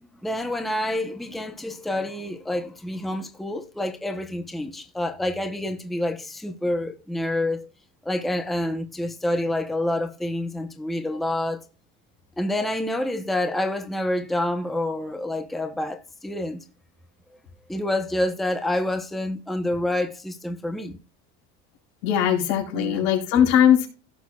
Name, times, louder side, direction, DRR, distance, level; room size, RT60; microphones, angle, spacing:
voice 1, 0.2-7.7 8.0-11.7 12.4-16.6 17.7-21.0 22.7-23.1, left 1 dB, ahead, 0.7 m, -28 dB
voice 2, 22.0-23.9, left 9 dB, 85° left, 4.1 m, -19 dB
16.5 x 6.3 x 2.3 m
cardioid pair, 165°, 33 cm